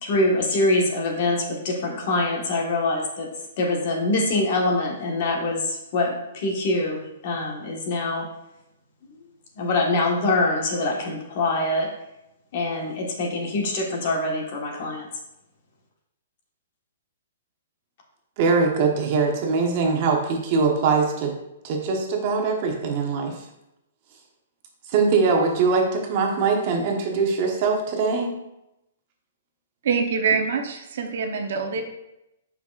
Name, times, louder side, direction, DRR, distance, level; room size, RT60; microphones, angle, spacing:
voice 1, 0.0-3.3 3.6-8.3 9.6-11.9 12.5-15.1, left 2 dB, 45° left, 0 dB, 1.3 m, -24 dB
voice 2, 18.4-21.4 21.6-23.4 24.9-28.3, right 4 dB, 35° right, 2 dB, 1.0 m, -22 dB
voice 3, 29.8-31.8, right 5 dB, 60° right, 4 dB, 0.8 m, -24 dB
7.1 x 5.5 x 2.5 m, 0.86 s
hypercardioid pair, 165°, 0 cm